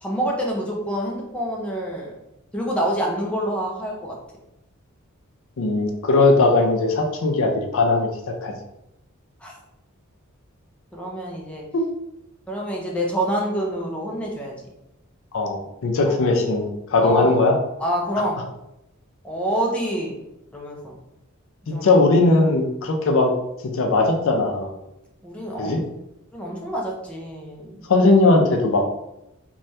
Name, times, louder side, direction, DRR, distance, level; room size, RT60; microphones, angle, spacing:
voice 1, 0.0-2.1 2.5-4.2 9.4-9.5 10.9-11.6 12.5-14.6 16.1-16.2 17.0-17.3 17.8-18.4 19.2-20.2 20.5-20.9 21.7-21.8 25.2-25.8 26.3-27.8, right 1 dB, 5° left, -2 dB, 0.5 m, -27 dB
voice 2, 5.6-8.1 8.4-8.5 11.7-11.8 15.3-17.5 21.7-23.3 23.6-24.7 25.6-25.8 27.9-29.0, left 2 dB, 65° left, 3 dB, 0.4 m, -19 dB
3.2 x 2.2 x 2.6 m, 0.86 s
head